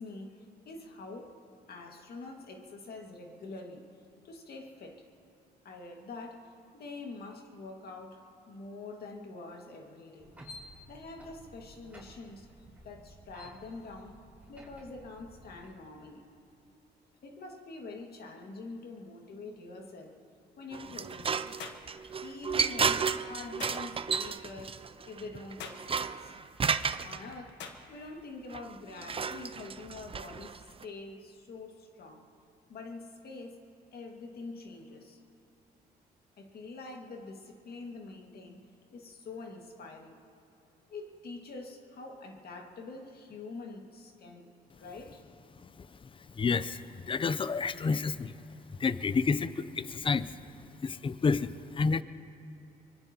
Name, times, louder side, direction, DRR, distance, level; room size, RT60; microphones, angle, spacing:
voice 1, 0.0-1.4 1.7-3.9 4.2-5.1 5.6-10.4 10.9-12.5 12.8-16.3 17.2-20.2 20.6-21.6 22.2-26.4 27.0-32.3 32.7-33.6 33.9-35.2 36.4-40.2 40.9-45.3, left 3 dB, 60° left, 2 dB, 2.0 m, -45 dB
sound 1, 10.2-15.7, equal, 10° right, 4.9 m, -52 dB
sound 2, 20.7-27.2 28.5-30.8, right 6 dB, 30° right, 0.5 m, -33 dB
sound 3, 21.6-21.9 23.6-23.8 25.6-25.9 27.6-27.8, left 6 dB, 80° left, 1.3 m, -43 dB
voice 2, 46.4-48.3 48.8-50.4 50.8-52.0, left 4 dB, 30° left, 15 dB, 0.6 m, -29 dB
24.5 x 20.0 x 2.9 m, 2.8 s
supercardioid pair, 65°, 18 cm